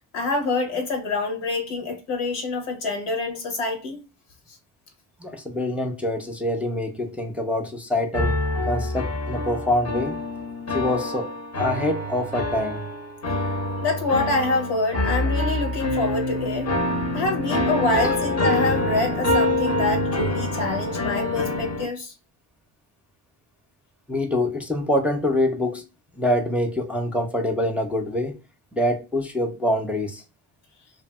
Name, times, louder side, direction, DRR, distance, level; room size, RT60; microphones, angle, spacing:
voice 1, 0.1-4.0 13.8-16.7 17.1-22.1, left 3 dB, 90° left, 1.1 m, -26 dB
voice 2, 5.2-8.4 8.7-10.2 10.7-12.8 18.0-18.1 24.1-25.8 26.2-28.4 28.7-30.2, left 1 dB, 5° right, 0.5 m, -25 dB
sound 1, 8.1-21.9, left 1 dB, 30° left, 0.7 m, -26 dB
2.6 x 2.6 x 2.3 m
supercardioid pair, 65°, 48 cm